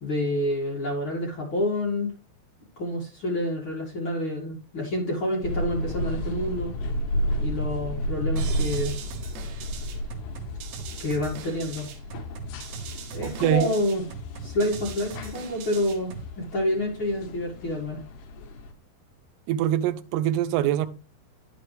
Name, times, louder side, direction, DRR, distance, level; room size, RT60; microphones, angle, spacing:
voice 1, 0.0-2.1 2.8-6.7 7.4-8.9 11.0-11.9 13.1-14.0 14.4-18.0, left 1 dB, 50° left, 1.5 m, -28 dB
sound 1, 5.4-18.7, equal, 75° left, 4.1 m, -32 dB
sound 2, 8.4-16.4, right 3 dB, 70° right, 3.2 m, -40 dB
voice 2, 13.2-13.7 19.5-20.9, right 12 dB, 85° right, 3.4 m, -24 dB
10.5 x 8.4 x 3.3 m
omnidirectional pair, 5.8 m